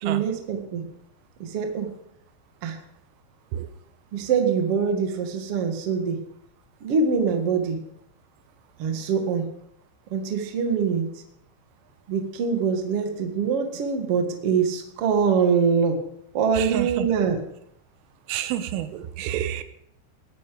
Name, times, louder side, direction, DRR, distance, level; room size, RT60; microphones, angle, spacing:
voice 1, 0.0-0.8 1.4-1.9 2.6-2.8 4.1-6.2 6.8-7.8 8.8-9.5 10.1-11.1 12.1-16.0 16.3-17.4, right 6 dB, 65° right, 4 dB, 1.4 m, -24 dB
voice 2, 16.5-17.1 18.3-19.6, right 11 dB, 85° right, 11 dB, 3.4 m, -29 dB
19.5 x 9.6 x 5.2 m, 0.76 s
omnidirectional pair, 5.7 m